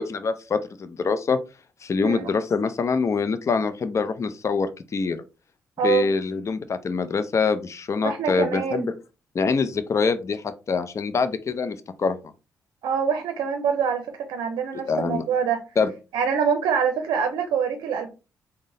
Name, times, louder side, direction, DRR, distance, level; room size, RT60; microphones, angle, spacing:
voice 1, 0.0-1.4 1.8-5.2 5.8-8.9 9.3-12.2 14.9-15.2 15.8-15.9, left 5 dB, 40° left, 10 dB, 0.5 m, -25 dB
voice 2, 8.0-8.9 12.8-15.6 16.1-18.1, right 6 dB, 70° right, 6 dB, 0.5 m, -25 dB
3.8 x 2.1 x 3.7 m, 0.30 s
hypercardioid pair, 45°, 7 cm